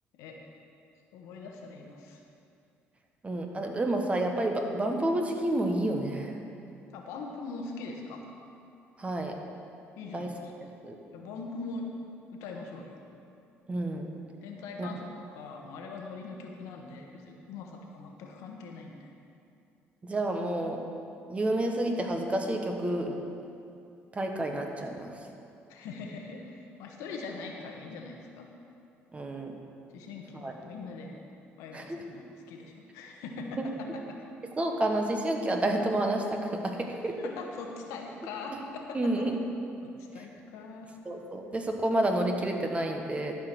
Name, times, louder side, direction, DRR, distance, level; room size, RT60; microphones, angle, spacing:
voice 1, 1.1-2.2 6.9-8.2 10.0-10.8 11.1-11.9 12.3-13.0 14.4-15.0 15.3-19.1 25.7-28.5 29.9-31.2 31.6-34.2 36.8-39.1 39.8-40.9, left 4 dB, 85° left, 1 dB, 1.2 m, -42 dB
voice 2, 3.2-6.3 9.0-9.3 10.1-10.3 10.8-11.0 13.7-14.1 14.8-14.9 20.0-20.8 21.3-23.1 24.1-25.1 29.1-29.6 30.4-30.5 31.7-32.0 33.6-33.7 34.6-37.2 38.9-39.3 41.0-43.3, right 1 dB, 25° right, 3 dB, 1.3 m, -29 dB
12.5 x 5.1 x 6.1 m, 2.6 s
supercardioid pair, 85°, 5 cm